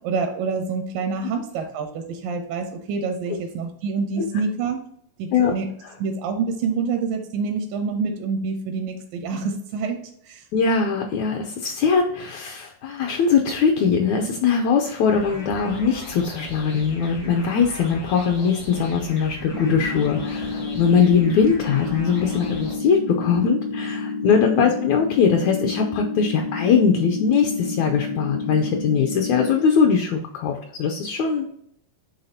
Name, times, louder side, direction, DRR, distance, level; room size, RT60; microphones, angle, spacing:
voice 1, 0.0-4.8 5.2-5.7 6.0-10.0 10.3-10.5 24.6-24.7, right 5 dB, 85° right, 5 dB, 2.5 m, -27 dB
voice 2, 10.5-31.5, left 6 dB, 80° left, 2 dB, 1.7 m, -21 dB
sound 1, 15.1-22.7, left 1 dB, 60° left, 0.8 m, -38 dB
sound 2, 19.5-29.5, left 4 dB, 25° right, 0.4 m, -30 dB
10.0 x 3.4 x 2.7 m, 0.68 s
omnidirectional pair, 3.9 m